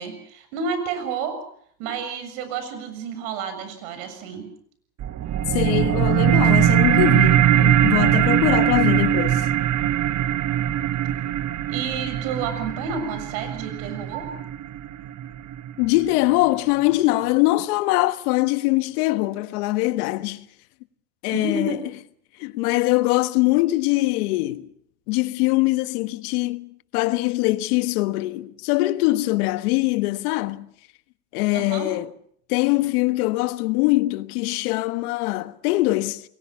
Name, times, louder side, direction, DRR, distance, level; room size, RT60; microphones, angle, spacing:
voice 1, 0.0-1.4 1.8-4.5 11.7-14.3 21.3-21.8 31.5-31.9, right 4 dB, 75° right, 7.4 m, -30 dB
sound 1, 5.0-16.0, right 11 dB, 40° right, 1.4 m, -21 dB
voice 2, 5.5-9.5 15.8-20.4 21.2-21.8 22.4-24.7 25.1-30.7 31.3-32.0 32.5-36.2, left 19 dB, 80° left, 1.5 m, -22 dB
29.5 x 22.5 x 6.1 m
supercardioid pair, 115°, 45 cm